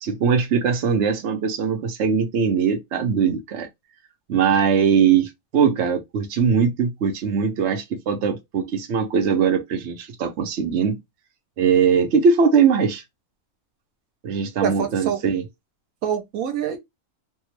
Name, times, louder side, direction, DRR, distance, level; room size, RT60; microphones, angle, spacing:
voice 1, 0.0-3.7 4.3-11.0 11.6-13.0 14.2-15.4, right 6 dB, 60° right, 1.0 m, -21 dB
voice 2, 14.6-15.2 16.0-16.8, right 8 dB, 80° right, 1.2 m, -25 dB
3.6 x 2.3 x 3.1 m
omnidirectional pair, 1.5 m